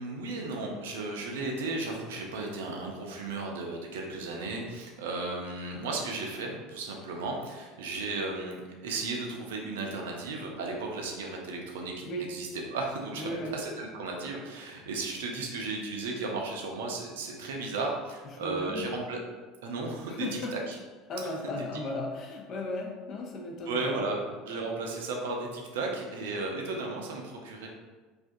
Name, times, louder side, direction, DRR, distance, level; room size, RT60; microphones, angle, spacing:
voice 1, 0.0-19.2 19.6-20.3 20.5-20.8 23.7-27.7, right 3 dB, 75° right, 1 dB, 0.4 m, -35 dB
voice 2, 13.2-13.6 18.3-18.9 20.1-20.6 21.1-24.1, left 1 dB, 50° left, 0 dB, 0.5 m, -36 dB
2.4 x 2.3 x 2.5 m, 1.3 s
hypercardioid pair, 70°, 0 cm